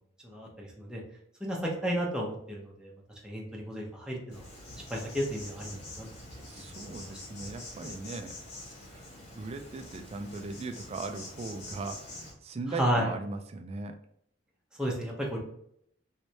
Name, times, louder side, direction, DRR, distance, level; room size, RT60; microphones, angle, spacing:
voice 1, 0.2-1.0 1.4-2.9 3.2-4.4 4.9-6.1 6.9-7.1 12.7-13.1 14.8-15.4, equal, 5° right, -2 dB, 0.7 m, -32 dB
Insect, 4.3-12.3, left 2 dB, 40° left, 1.2 m, -46 dB
voice 2, 6.4-8.3 8.9-9.1 9.3-14.0, right 3 dB, 35° right, 6 dB, 0.4 m, -39 dB
3.2 x 3.1 x 2.8 m, 0.70 s
head